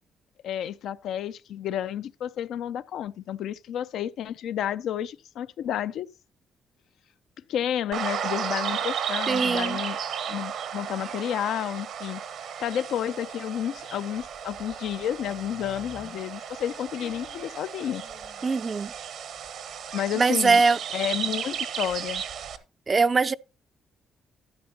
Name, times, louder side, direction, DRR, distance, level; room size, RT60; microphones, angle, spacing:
voice 1, 0.4-6.1 7.5-10.0 10.3-12.2 12.6-18.0 19.9-20.6 20.9-22.2, left 10 dB, 80° left, 0.4 m, -31 dB
sound 1, 7.9-22.6, right 8 dB, 75° right, 1.0 m, -34 dB
voice 2, 9.3-9.8 18.4-18.9 20.2-20.8 22.9-23.3, right 4 dB, 30° right, 0.4 m, -22 dB
sound 2, 15.2-19.0 19.3-20.5, left 6 dB, 50° left, 0.9 m, -51 dB
12.0 x 9.5 x 2.8 m
cardioid pair, 90°, 0 cm